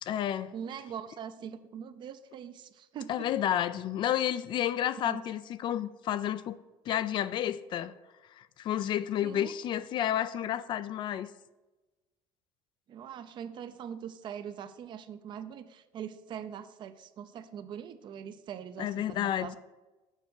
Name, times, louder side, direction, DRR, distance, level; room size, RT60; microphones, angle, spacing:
voice 1, 0.0-0.5 3.1-6.6 6.9-7.9 8.3-11.3 18.8-19.6, left 11 dB, 45° left, 0.3 m, -31 dB
voice 2, 0.5-3.3 5.0-5.2 9.2-9.5 12.9-19.6, right 8 dB, 45° right, 0.5 m, -42 dB
7.3 x 4.6 x 6.9 m
cardioid pair, 130°, 11 cm